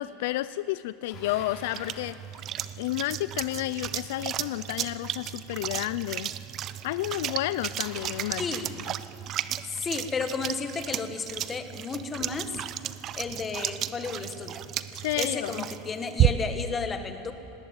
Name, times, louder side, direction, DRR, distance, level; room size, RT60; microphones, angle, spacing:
voice 1, 0.0-2.2 2.8-6.3 6.8-8.4 8.8-8.9 14.9-15.7, left 15 dB, 70° left, 16 dB, 0.5 m, -31 dB
Bicycle, 1.1-2.2 7.7-9.0, left 3 dB, 35° left, 6.0 m, -47 dB
sound 1, 1.1-16.7, right 12 dB, 35° right, 0.6 m, -33 dB
voice 2, 8.4-8.7 9.7-12.6 13.1-14.6 15.1-17.3, left 5 dB, 20° left, 7 dB, 1.5 m, -33 dB
18.5 x 18.0 x 8.9 m, 2.6 s
supercardioid pair, 150°, 0 cm